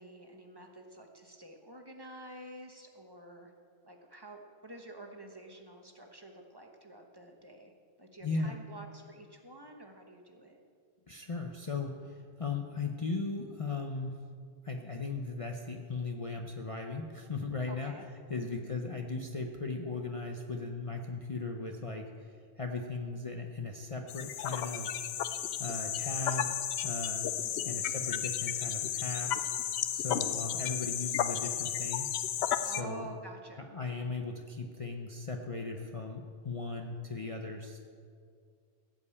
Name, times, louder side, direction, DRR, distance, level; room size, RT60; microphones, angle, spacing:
voice 1, 0.0-3.5 3.8-7.7 8.0-10.6 17.7-18.0 18.4-18.7 27.4-27.7 32.6-33.7, right 2 dB, 20° right, 2 dB, 1.1 m, -49 dB
voice 2, 8.2-8.6 11.1-14.2 14.6-17.9 18.3-25.0 25.6-26.6 26.8-27.2 27.7-29.3 29.9-32.1 32.6-33.1 33.7-37.8, left 3 dB, 35° left, 2 dB, 0.7 m, -37 dB
sound 1, 24.1-32.8, left 10 dB, 75° left, 0.8 m, -33 dB
16.0 x 5.4 x 8.3 m, 2.2 s
omnidirectional pair, 1.1 m